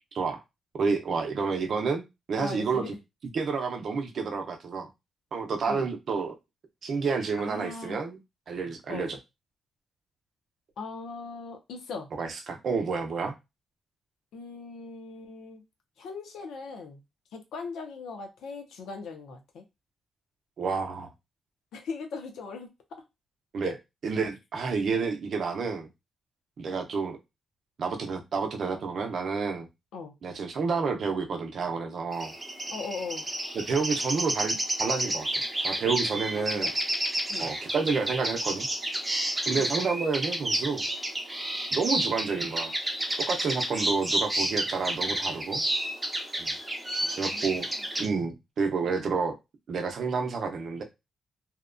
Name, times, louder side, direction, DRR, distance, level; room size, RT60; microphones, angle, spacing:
voice 1, 0.7-2.9 3.3-4.9 5.3-6.3 6.8-8.2 8.5-9.2 12.2-13.4 20.6-21.1 23.5-23.7 24.0-25.9 26.6-27.2 27.8-29.7 30.2-32.3 33.5-36.7 37.4-38.7 39.5-40.9 41.7-42.7 43.3-45.6 46.4-46.5 47.2-47.7 48.0-49.4 49.7-50.8, right 5 dB, 55° right, 0.5 m, -29 dB
voice 2, 2.4-2.9 5.7-5.9 7.4-8.0 8.9-9.1 10.8-12.1 14.3-15.6 16.0-17.0 17.3-19.6 21.7-23.0 23.6-23.7 29.9-30.1 32.7-33.3 36.4-36.7 37.3-37.5 39.6-39.7 47.0-47.9, left 4 dB, 90° left, 0.6 m, -39 dB
sound 1, 32.1-48.1, right 1 dB, 15° right, 0.7 m, -31 dB
2.8 x 2.2 x 2.4 m
cardioid pair, 125°, 0 cm